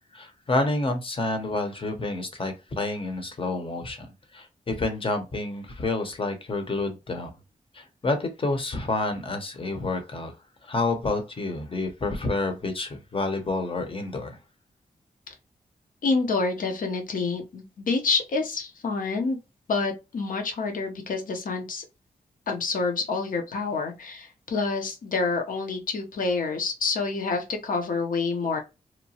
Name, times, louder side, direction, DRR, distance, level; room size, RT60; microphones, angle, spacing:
voice 1, 0.1-4.1 4.3-7.3 7.7-10.3 10.6-14.4, left 2 dB, 35° left, 0.8 m, -29 dB
voice 2, 16.0-19.4 19.7-21.8 22.5-28.6, left 4 dB, 70° left, 0.7 m, -27 dB
2.9 x 2.1 x 2.7 m
cardioid pair, 75°, 15 cm